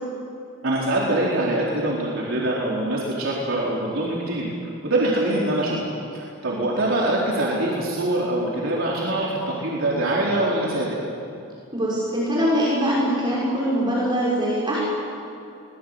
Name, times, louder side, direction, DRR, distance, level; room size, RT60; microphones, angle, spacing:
voice 1, 0.6-4.5 4.8-5.8 6.1-11.0, right 1 dB, 70° right, -5 dB, 4.3 m, -24 dB
voice 2, 11.7-14.8, equal, 25° right, -7 dB, 5.9 m, -22 dB
24.5 x 20.0 x 8.2 m, 2.7 s
head